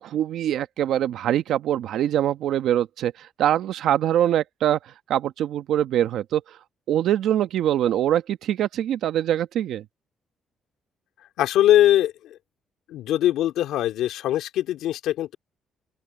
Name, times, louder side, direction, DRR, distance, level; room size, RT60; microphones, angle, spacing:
voice 1, 0.0-4.8 5.1-6.4 6.9-9.8, right 11 dB, 80° right, 1.2 m, -23 dB
voice 2, 11.4-12.4 12.9-15.4, left 13 dB, 85° left, 2.8 m, -21 dB
open air
cardioid pair, 90°, 0 cm